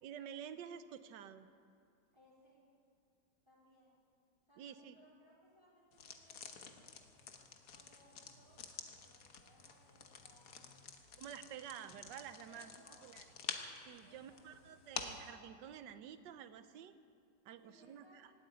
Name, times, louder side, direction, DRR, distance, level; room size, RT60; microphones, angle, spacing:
voice 1, 0.0-1.5 4.6-5.0 11.2-12.7 13.0-13.2 13.9-16.9 17.4-18.3, right 9 dB, 80° right, 11 dB, 1.4 m, -50 dB
voice 2, 2.1-2.6 3.5-4.0 4.5-7.3 7.7-10.8 12.4-13.3 14.0-14.4 17.6-18.2, right 1 dB, 15° right, -7 dB, 3.1 m, -67 dB
sound 1, 5.9-15.3, left 6 dB, 55° left, 1.4 m, -50 dB
16.0 x 9.0 x 9.5 m, 2.3 s
omnidirectional pair, 1.9 m